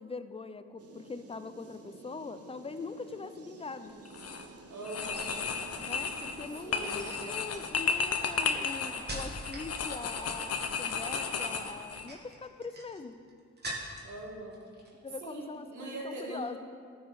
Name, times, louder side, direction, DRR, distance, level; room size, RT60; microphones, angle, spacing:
voice 1, 0.0-3.9 5.8-13.2 15.0-16.6, left 4 dB, 20° left, 11 dB, 0.5 m, -42 dB
sound 1, 0.8-7.7, right 4 dB, 50° right, 1.0 m, -51 dB
sound 2, 4.0-4.4 4.8-12.1, left 5 dB, 55° left, 0.8 m, -34 dB
voice 2, 4.7-5.4 6.6-7.1 14.0-14.6 15.2-16.5, right 2 dB, 75° right, -1 dB, 1.8 m, -41 dB
sound 3, 6.3-6.6 7.3-9.7 10.0-10.5 11.8-14.2 14.5-15.2 15.4-15.7, right 1 dB, 35° right, 2.1 m, -44 dB
13.0 x 5.0 x 4.1 m, 2.2 s
supercardioid pair, 55°, 30 cm